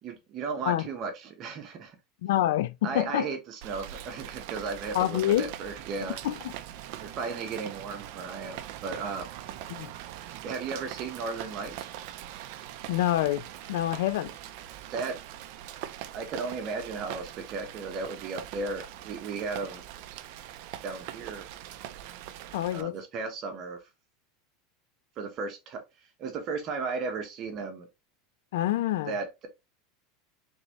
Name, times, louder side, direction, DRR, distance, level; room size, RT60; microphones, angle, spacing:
voice 1, 0.0-2.0 2.8-6.2 7.0-9.3 10.4-11.9 14.9-15.2 16.1-19.8 20.8-21.5 22.7-23.8 25.2-25.8 26.2-27.9 29.1-29.5, right 4 dB, 30° right, 1.1 m, -35 dB
voice 2, 2.2-3.3 4.9-5.5 6.2-6.5 9.7-9.9 12.9-14.3 22.5-22.9 28.5-29.1, left 13 dB, 80° left, 0.4 m, -27 dB
Rain, 3.6-22.8, right 12 dB, 50° right, 0.5 m, -42 dB
4.0 x 3.6 x 3.0 m
supercardioid pair, 170°, 0 cm